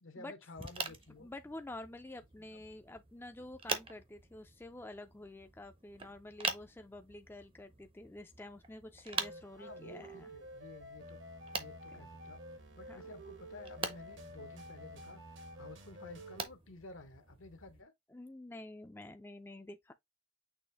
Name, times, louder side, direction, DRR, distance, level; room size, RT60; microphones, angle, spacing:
voice 1, 0.0-1.3 2.4-2.6 9.6-11.2 11.5-12.4 12.7-15.2 15.6-17.9, left 2 dB, 80° left, 1.0 m, -53 dB
sound 1, 0.5-17.8, right 5 dB, 25° right, 0.6 m, -45 dB
voice 2, 1.2-10.3 12.9-13.0 18.1-19.9, left 1 dB, 10° left, 0.3 m, -49 dB
sound 2, 9.1-16.5, equal, 65° right, 1.1 m, -50 dB
6.2 x 2.5 x 3.3 m
head